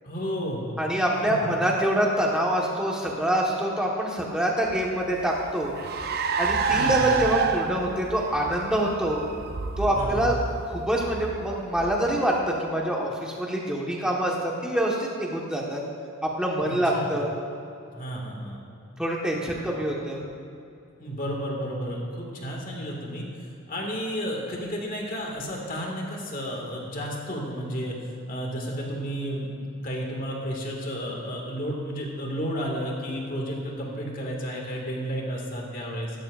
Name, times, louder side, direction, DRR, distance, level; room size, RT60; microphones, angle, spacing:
voice 1, 0.0-0.8 6.7-7.1 9.9-10.3 16.6-17.1 17.9-18.6 19.6-19.7 21.0-23.3 23.7-36.2, equal, 40° left, -1 dB, 2.0 m, -32 dB
voice 2, 0.8-5.7 6.4-9.2 9.8-10.3 10.6-15.8 16.2-17.3 19.0-20.2, right 1 dB, 5° right, -2 dB, 1.4 m, -25 dB
Car, 4.7-12.5, right 5 dB, 45° right, 0.5 m, -29 dB
15.5 x 13.0 x 2.6 m, 2.7 s
head